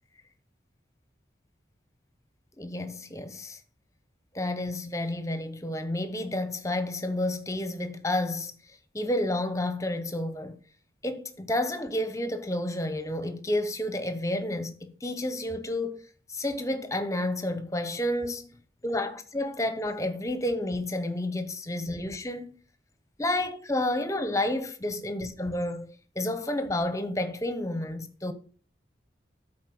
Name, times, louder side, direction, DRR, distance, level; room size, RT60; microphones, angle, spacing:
voice 1, 2.6-3.6 4.3-8.5 8.9-10.6 11.0-16.0 16.3-18.5 18.8-22.6 23.2-28.3, left 1 dB, 20° left, 0.9 m, -30 dB
12.5 x 4.4 x 6.0 m
head